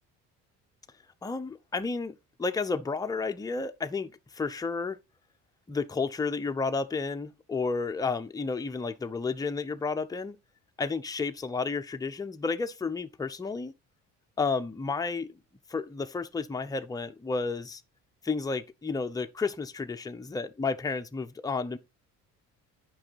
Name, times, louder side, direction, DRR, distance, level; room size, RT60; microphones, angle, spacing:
voice 1, 1.2-2.1 2.4-5.0 5.7-10.4 10.8-13.7 14.4-15.3 15.7-17.8 18.2-21.8, left 4 dB, 10° left, 0.6 m, -31 dB
8.8 x 5.4 x 4.0 m
cardioid pair, 95°, 35 cm